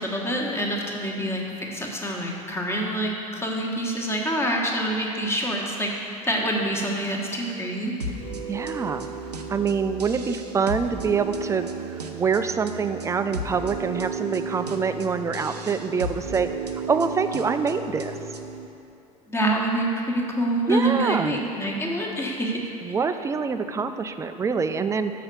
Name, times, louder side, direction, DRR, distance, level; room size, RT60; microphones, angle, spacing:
voice 1, 0.0-7.9 19.3-22.7, right 1 dB, 15° left, -1 dB, 1.3 m, -26 dB
sound 1, 8.0-18.7, right 3 dB, 85° right, 0.6 m, -34 dB
voice 2, 8.5-9.1 9.5-16.5 16.9-18.2 20.7-21.4 22.8-25.1, right 5 dB, 15° right, 9 dB, 0.4 m, -25 dB
6.6 x 5.6 x 6.8 m, 2.7 s
figure-of-eight pair, 70°, 20 cm